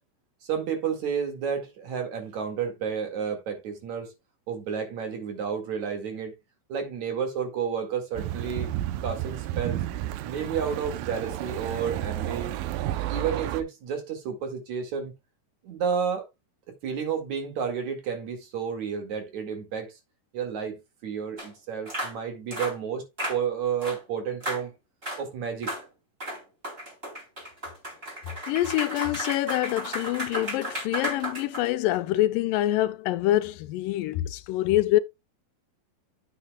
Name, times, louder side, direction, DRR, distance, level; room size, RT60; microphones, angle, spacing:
voice 1, 0.4-4.1 4.5-6.3 6.7-8.7 9.0-9.8 10.2-12.5 13.1-15.1 15.6-16.3 16.8-19.9 20.3-24.7 25.2-25.7, right 7 dB, 60° right, 3.2 m, -31 dB
sound 1, 8.2-13.6, right 13 dB, 85° right, 2.5 m, -31 dB
sound 2, 21.4-21.5 21.9-22.2 22.5-22.8 23.2-23.4 23.8-24.0 24.4-24.6 25.0-25.2 25.6-25.8 26.2-32.0, right 1 dB, 15° right, 3.3 m, -34 dB
voice 2, 28.5-35.0, left 15 dB, 85° left, 2.3 m, -25 dB
9.3 x 8.4 x 2.3 m
omnidirectional pair, 3.9 m